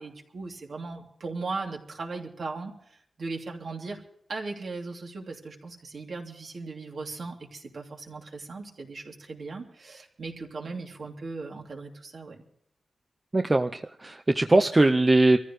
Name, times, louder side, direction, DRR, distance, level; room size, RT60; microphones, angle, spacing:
voice 1, 0.0-4.0 4.3-12.4, right 3 dB, 60° right, 1 dB, 2.9 m, -38 dB
voice 2, 13.3-15.4, right 2 dB, 20° right, 7 dB, 0.6 m, -21 dB
25.0 x 14.5 x 3.1 m, 0.68 s
wide cardioid pair, 130°, 0 cm